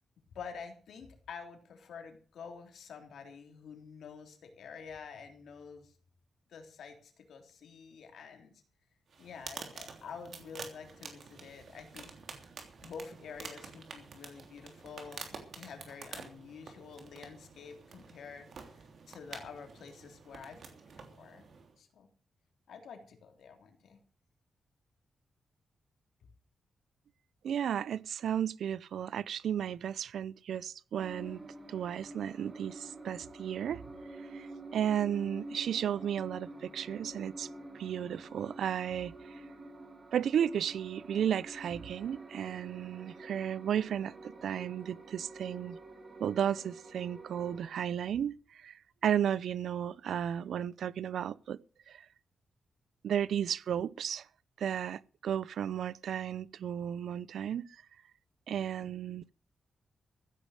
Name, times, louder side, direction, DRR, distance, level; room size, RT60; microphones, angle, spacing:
voice 1, 0.4-5.9 6.5-8.5 9.2-12.1 12.8-18.5 18.8-20.6 20.9-21.5 21.8-22.1 22.7-24.0 58.8-58.9, left 6 dB, 90° left, 3.4 m, -48 dB
sound 1, 9.1-21.8, right 5 dB, 55° right, 3.2 m, -49 dB
voice 2, 27.4-31.4 31.7-33.8 34.3-37.5 37.7-39.4 40.1-45.8 46.2-51.6 51.9-52.0 53.0-54.2 54.6-57.7 58.5-59.2, right 9 dB, 85° right, 0.6 m, -34 dB
sound 2, 31.0-47.7, right 2 dB, 30° right, 3.3 m, -48 dB
15.0 x 9.9 x 6.5 m
wide cardioid pair, 175°, 0 cm